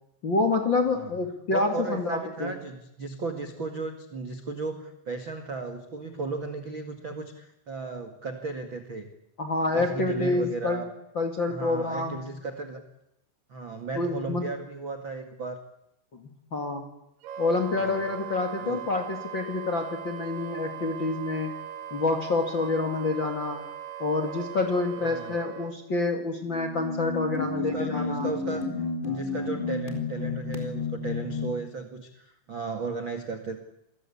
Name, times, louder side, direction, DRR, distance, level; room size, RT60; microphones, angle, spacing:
voice 1, 0.2-2.6 9.4-10.8 11.1-12.2 13.9-14.4 16.1-16.2 16.5-16.9 17.4-21.5 21.9-23.6 24.0-28.3, left 3 dB, 60° left, 4 dB, 1.2 m, -27 dB
voice 2, 0.8-1.1 1.5-9.1 9.7-10.9 11.5-12.8 13.5-15.6 17.7-17.9 18.6-18.9 25.0-25.4 27.5-28.7 29.0-33.6, right 3 dB, 90° right, 6 dB, 1.0 m, -35 dB
Wind instrument woodwind instrument, 17.2-25.7, right 10 dB, 65° right, 4.0 m, -39 dB
sound 1, 26.3-31.6, left 4 dB, 10° left, 2.9 m, -31 dB
28.5 x 21.5 x 8.6 m, 0.81 s
omnidirectional pair, 6.0 m